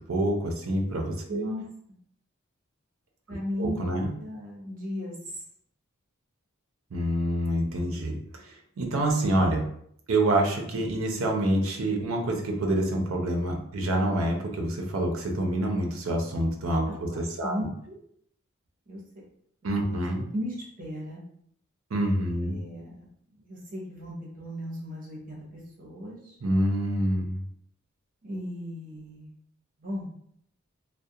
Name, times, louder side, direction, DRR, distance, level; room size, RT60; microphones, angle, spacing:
voice 1, 0.1-1.4 3.6-4.1 6.9-8.2 8.4-9.7 10.1-17.6 19.6-20.2 21.9-22.5 26.4-27.4, right 1 dB, 70° right, 2 dB, 0.5 m, -27 dB
voice 2, 1.3-1.6 3.3-5.1 16.9-18.0 18.9-19.0 19.8-20.0 20.3-21.2 22.3-23.1 23.4-25.4 25.8-26.3 28.2-29.3 29.8-30.1, equal, 40° right, -4 dB, 0.8 m, -36 dB
2.3 x 2.1 x 2.7 m, 0.68 s
head